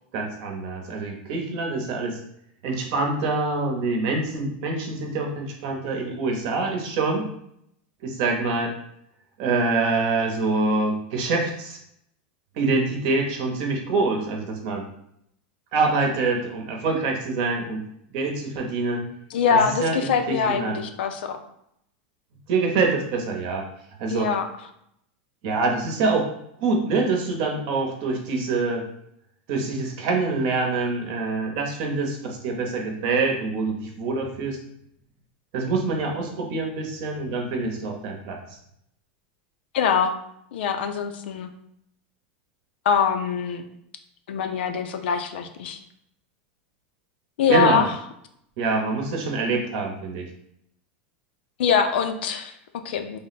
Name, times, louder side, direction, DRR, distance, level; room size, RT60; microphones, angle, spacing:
voice 1, 0.1-2.2 2.6-7.3 8.0-8.7 9.4-11.8 12.5-14.8 15.7-17.8 18.1-19.0 19.5-20.8 22.5-23.6 24.0-24.3 25.4-26.3 26.6-28.9 29.5-34.6 35.5-38.4 47.5-47.9 48.6-50.2, right 3 dB, 50° right, 2 dB, 0.9 m, -25 dB
voice 2, 19.3-21.4 24.1-24.5 39.7-40.1 40.5-41.5 42.9-43.7 44.3-45.8 47.4-47.9 51.6-53.2, left 6 dB, 80° left, 7 dB, 0.5 m, -23 dB
3.5 x 2.1 x 4.0 m, 0.74 s
supercardioid pair, 150°, 6 cm